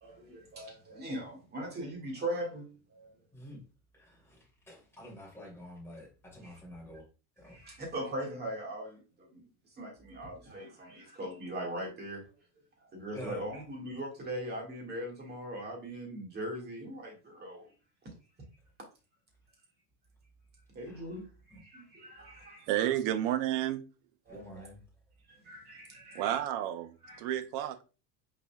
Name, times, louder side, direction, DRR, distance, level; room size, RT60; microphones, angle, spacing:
voice 1, 0.0-3.1 6.4-6.5 7.5-12.2 12.8-17.7 18.0-18.1 20.7-21.3 21.6-22.9 24.3-24.6 25.3-26.4 27.0-27.4, right 1 dB, 25° right, 1.8 m, -40 dB
voice 2, 3.3-3.6 3.9-7.0 7.4-7.6 13.1-13.5 20.8-21.2 21.5-21.6 24.3-24.8, left 1 dB, 5° left, 2.5 m, -48 dB
voice 3, 22.7-23.8 26.1-27.8, right 12 dB, 65° right, 0.7 m, -31 dB
5.9 x 4.0 x 2.2 m
cardioid pair, 160°, 41 cm